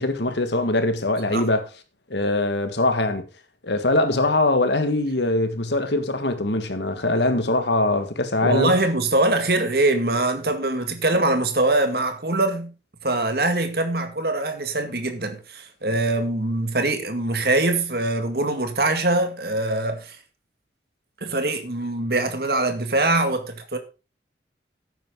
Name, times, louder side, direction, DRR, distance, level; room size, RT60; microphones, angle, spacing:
voice 1, 0.0-1.6 2.1-3.2 3.6-8.7, left 2 dB, 75° left, 1.8 m, -22 dB
voice 2, 8.4-12.7 13.0-20.2 21.2-23.8, right 2 dB, 55° right, 2.0 m, -23 dB
12.0 x 9.2 x 3.9 m
head